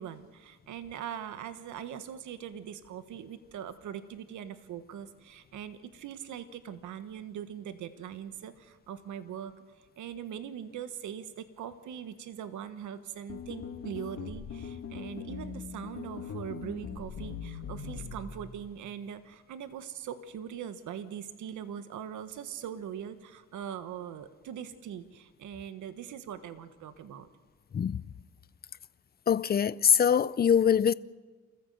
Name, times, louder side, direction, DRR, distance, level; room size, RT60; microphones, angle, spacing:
voice 1, 0.0-27.3, right 9 dB, 75° right, 1.4 m, -41 dB
sound 1, 13.3-18.6, left 6 dB, 60° left, 2.8 m, -41 dB
voice 2, 29.3-30.9, left 8 dB, 30° left, 0.6 m, -23 dB
27.5 x 14.5 x 7.8 m
cardioid pair, 90°, 30 cm